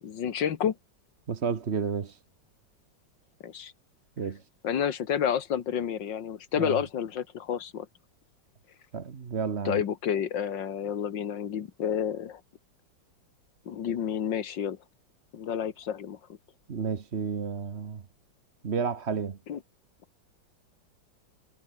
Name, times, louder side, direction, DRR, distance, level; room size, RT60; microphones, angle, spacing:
voice 1, 0.0-0.8 3.4-3.7 4.6-7.9 9.6-12.4 13.7-14.8 15.3-16.2 19.5-19.6, left 8 dB, 75° left, 2.1 m, -30 dB
voice 2, 1.3-2.2 4.2-4.4 6.6-6.8 8.9-9.8 16.7-18.0 18.6-19.4, right 6 dB, 40° right, 1.4 m, -31 dB
omnidirectional pair, 2.0 m